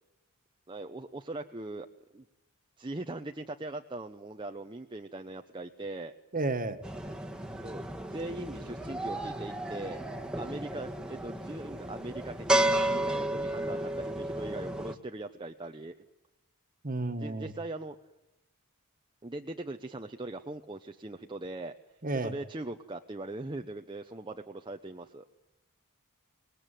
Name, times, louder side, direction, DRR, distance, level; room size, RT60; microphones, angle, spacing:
voice 1, 0.7-1.9 2.1-2.3 2.8-6.1 7.6-7.8 8.1-10.0 10.3-12.6 12.9-15.9 17.1-18.0 19.2-21.8 22.1-25.3, right 2 dB, 20° right, 4 dB, 0.8 m, -40 dB
voice 2, 6.3-6.8 16.8-17.5 22.0-22.3, right 2 dB, 40° right, 8 dB, 1.8 m, -31 dB
sound 1, 6.8-14.9, right 1 dB, 5° right, 1.6 m, -32 dB
25.5 x 20.5 x 9.2 m, 0.95 s
head